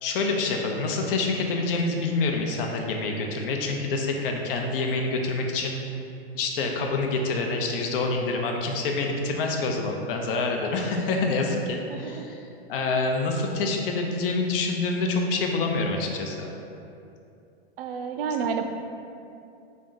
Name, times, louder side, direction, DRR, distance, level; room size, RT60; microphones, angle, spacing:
voice 1, 0.0-5.8 6.3-12.4 12.7-16.5, left 3 dB, 60° left, 2 dB, 0.6 m, -27 dB
voice 2, 11.9-12.3 17.8-18.7, right 6 dB, 65° right, 6 dB, 0.4 m, -30 dB
3.4 x 2.6 x 3.8 m, 2.7 s
hypercardioid pair, 135°, 32 cm